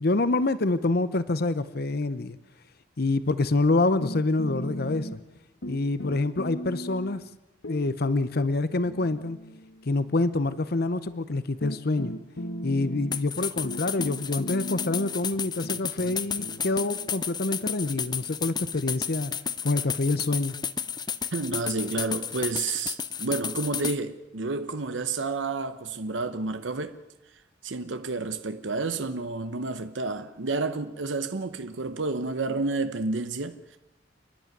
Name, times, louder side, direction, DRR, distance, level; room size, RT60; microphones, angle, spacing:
voice 1, 0.0-2.4 3.0-5.2 5.7-7.2 7.7-9.4 9.9-12.2 12.6-19.3 19.6-20.5, left 2 dB, 55° left, 0.8 m, -26 dB
sound 1, 4.0-5.4 5.6-7.2 7.6-10.1 11.1-11.2 11.6-19.1, equal, 80° left, 1.3 m, -38 dB
sound 2, 13.1-24.0, left 7 dB, 25° left, 0.7 m, -32 dB
voice 2, 21.3-27.0 27.6-33.8, right 3 dB, 85° right, 0.9 m, -30 dB
29.5 x 11.0 x 9.2 m
head